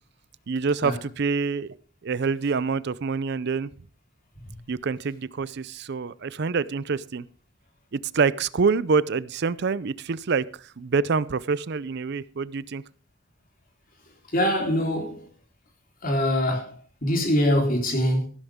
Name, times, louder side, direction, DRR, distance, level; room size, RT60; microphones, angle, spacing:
voice 1, 0.5-1.7 2.0-3.7 4.7-7.3 7.9-10.4 10.8-12.8, right 5 dB, 60° right, 0.5 m, -26 dB
voice 2, 14.3-15.2 16.0-18.3, equal, 50° left, 4.0 m, -24 dB
14.5 x 12.5 x 3.6 m
head